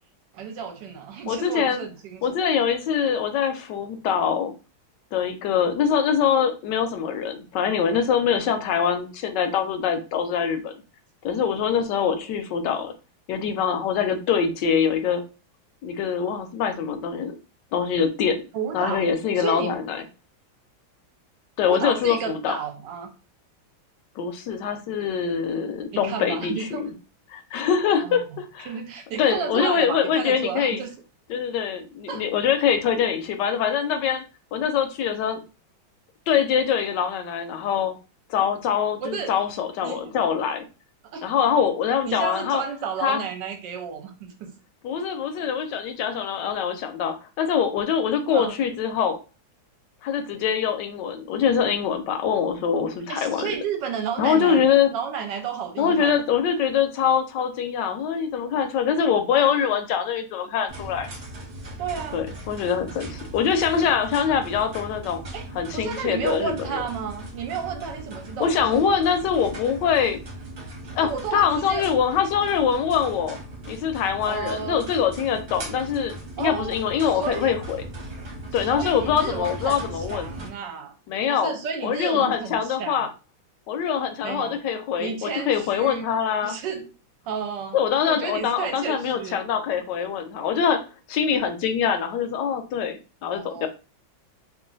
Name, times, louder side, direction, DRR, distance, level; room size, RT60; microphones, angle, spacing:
voice 1, 0.3-2.4 18.5-19.0 19.4-19.7 21.7-23.1 25.9-26.9 28.0-28.2 28.7-30.9 32.1-32.2 39.0-39.4 39.8-40.1 41.1-41.3 42.0-44.5 48.3-48.6 53.1-56.2 61.8-62.2 65.3-65.5 65.7-69.0 71.0-71.8 74.3-74.9 76.4-76.8 77.1-77.6 78.7-80.9 81.3-83.0 84.2-84.6 85.0-86.1 86.4-86.8 87.2-87.8 88.0-89.4 93.3-93.7, right 6 dB, 70° right, 5 dB, 1.2 m, -32 dB
voice 2, 1.3-1.9 2.2-4.5 5.1-10.7 11.2-12.9 13.3-15.2 15.8-17.4 17.7-18.4 18.7-20.0 21.6-22.6 24.2-26.9 27.3-28.7 29.2-30.8 31.3-34.2 34.5-35.4 36.3-37.9 38.3-40.6 41.2-42.6 43.0-43.2 44.8-49.2 50.0-53.5 54.2-54.9 55.8-61.1 62.1-65.2 65.5-66.8 68.4-70.2 70.9-73.4 73.7-77.8 78.5-80.3 81.1-81.5 81.8-83.1 83.7-86.5 87.7-90.8 91.1-93.7, left 7 dB, 75° left, 8 dB, 1.1 m, -24 dB
sound 1, 60.7-80.5, right 1 dB, 45° right, 1.1 m, -38 dB
3.1 x 2.4 x 3.8 m, 0.33 s
omnidirectional pair, 2.1 m